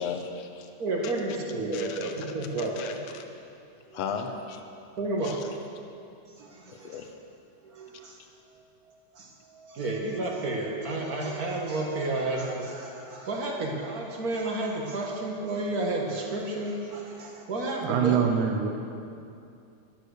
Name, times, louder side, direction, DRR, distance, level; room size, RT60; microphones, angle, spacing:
voice 1, 0.0-0.7 1.0-1.1 1.7-2.1 2.6-3.2 3.9-4.6 5.2-5.4 6.7-7.1 9.8-9.9, left 6 dB, 65° left, 5 dB, 2.0 m, -36 dB
voice 2, 0.8-3.0 3.9-4.0 5.0-5.6 6.4-7.0 7.6-8.2 9.1-18.3, right 2 dB, 35° right, -1 dB, 1.7 m, -31 dB
voice 3, 17.8-18.7, right 7 dB, 85° right, 4 dB, 2.4 m, -24 dB
13.5 x 12.0 x 6.5 m, 2.5 s
omnidirectional pair, 3.5 m